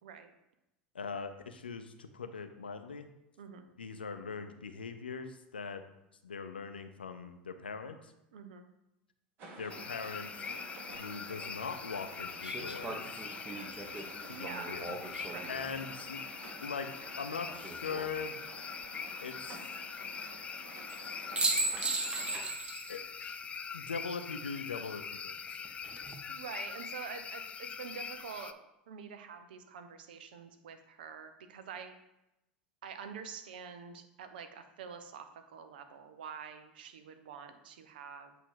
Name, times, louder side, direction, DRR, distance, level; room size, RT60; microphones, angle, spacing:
voice 1, 0.9-3.1 3.8-5.8 6.2-8.1 9.6-10.6 10.9-13.2 14.3-15.0 15.5-16.2 16.6-16.9 17.2-18.3 19.2-19.7 22.9-23.0 23.7-25.6, left 5 dB, 85° left, 8 dB, 0.5 m, -41 dB
voice 2, 8.3-8.7 14.3-14.9 15.2-15.7 26.3-28.6 28.9-31.9 32.8-38.4, right 6 dB, 70° right, 8 dB, 0.7 m, -46 dB
sound 1, 9.4-22.4, right 2 dB, 45° right, 1.7 m, -50 dB
sound 2, 9.7-28.5, left 6 dB, 25° left, 0.3 m, -43 dB
sound 3, 10.9-11.0 12.4-15.6 17.5-18.1 20.9-21.0 21.4-22.9 23.2-23.3 25.6-26.1, right 3 dB, 20° right, 1.0 m, -37 dB
7.8 x 2.9 x 4.8 m, 0.88 s
figure-of-eight pair, 80°, 5 cm